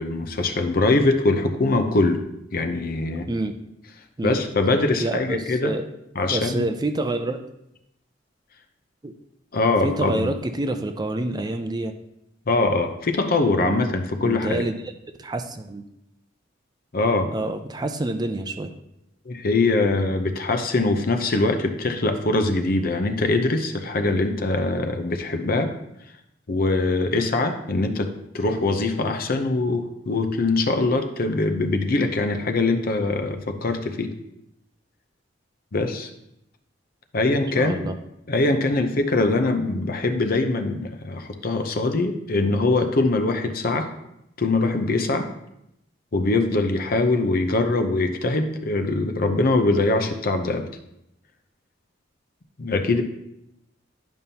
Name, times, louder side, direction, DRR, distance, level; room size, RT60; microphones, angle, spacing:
voice 1, 0.0-2.2 2.5-3.3 4.2-5.7 6.2-6.7 9.5-10.3 12.5-14.7 16.9-17.3 19.3-25.7 26.5-34.1 35.7-36.1 37.1-37.9 38.3-43.9 44.4-45.3 46.1-50.7 52.6-53.0, left 2 dB, 50° left, 6 dB, 0.7 m, -22 dB
voice 2, 5.0-5.8 6.3-7.4 9.0-9.1 9.8-11.9 13.6-13.8 14.2-14.7 15.2-15.8 17.3-18.7 37.5-37.9 38.5-38.6, right 2 dB, 20° right, 7 dB, 0.4 m, -27 dB
10.5 x 5.4 x 2.8 m, 0.83 s
head